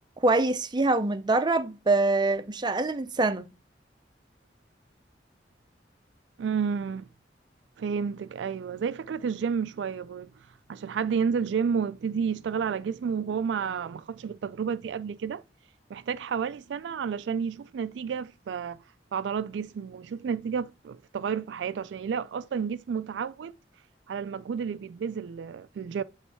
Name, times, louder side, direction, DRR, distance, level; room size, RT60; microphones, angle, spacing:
voice 1, 0.2-3.5, right 2 dB, 25° right, 0.5 m, -24 dB
voice 2, 6.4-7.1 7.8-10.3 10.7-15.4 15.9-18.8 19.1-23.5 24.1-26.0, right 6 dB, 80° right, 0.3 m, -31 dB
8.1 x 3.2 x 4.6 m
head